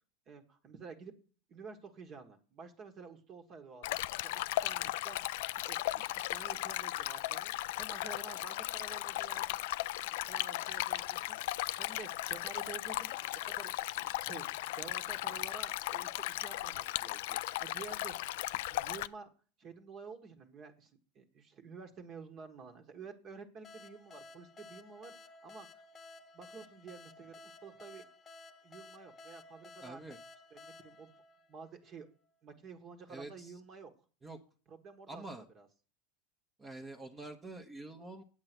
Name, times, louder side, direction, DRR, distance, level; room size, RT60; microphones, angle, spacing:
voice 1, 0.3-1.1 1.5-5.4 5.7-7.5 7.8-9.6 10.2-11.4 11.8-13.7 14.0-18.1 18.7-19.3 19.6-25.8 26.3-28.1 28.6-30.2 30.5-31.1 31.5-32.1 32.4-33.9 34.7-35.2 35.5-35.7, right 5 dB, 35° right, 5 dB, 1.5 m, -50 dB
Stream, 3.8-19.1, left 16 dB, 70° left, 0.4 m, -36 dB
sound 1, 23.6-32.1, left 3 dB, 25° left, 1.1 m, -55 dB
voice 2, 29.8-30.2 33.1-33.6 34.2-34.4 35.1-35.5 36.6-38.2, right 2 dB, 20° right, 1 dB, 1.1 m, -46 dB
8.6 x 8.0 x 6.1 m, 0.37 s
supercardioid pair, 125°, 0 cm